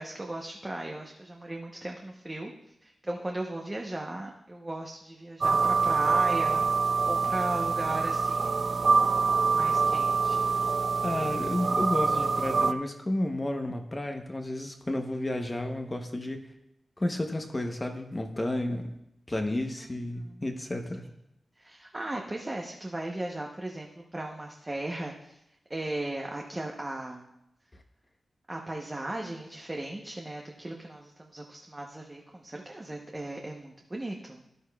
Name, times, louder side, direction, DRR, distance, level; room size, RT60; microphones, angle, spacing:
voice 1, 0.0-2.5 2.8-8.8 9.5-10.5 11.0-11.4 19.8-20.0 20.2-20.4 21.6-25.4 25.7-27.3 28.5-34.4, right 1 dB, 15° right, 0 dB, 0.7 m, -37 dB
sound 1, 5.4-12.7, right 4 dB, 45° right, 0.3 m, -25 dB
voice 2, 11.0-16.5 17.0-18.9 19.3-21.1, left 1 dB, 20° left, 4 dB, 0.8 m, -32 dB
13.0 x 11.5 x 2.3 m, 0.84 s
wide cardioid pair, 150°, 0 cm